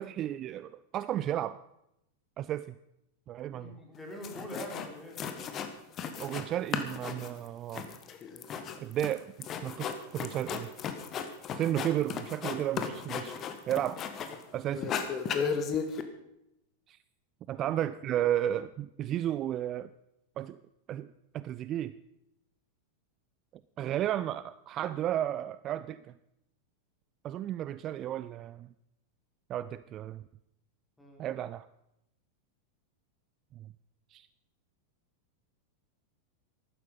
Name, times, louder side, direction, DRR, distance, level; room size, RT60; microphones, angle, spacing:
voice 1, 0.0-1.6 2.4-2.8 3.3-3.8 6.2-7.9 8.8-10.7 11.5-13.4 13.7-14.0 14.5-14.9 16.9-17.0 17.5-19.9 20.4-20.6 20.9-22.0 23.8-26.1 27.2-28.7 29.5-30.2 31.2-31.7 33.6-33.7 34.1-34.3, right 12 dB, 30° right, 16 dB, 0.4 m, -33 dB
voice 2, 3.5-5.2 17.5-17.8 18.1-18.3 23.8-23.9 31.0-31.2, equal, 10° left, 0 dB, 4.2 m, -44 dB
sound 1, 3.9-4.0 4.2-4.9 5.2-6.5 6.7-14.4 14.7-16.0, left 6 dB, 30° left, 1.4 m, -35 dB
14.5 x 12.0 x 5.4 m, 0.83 s
figure-of-eight pair, 90°, 0 cm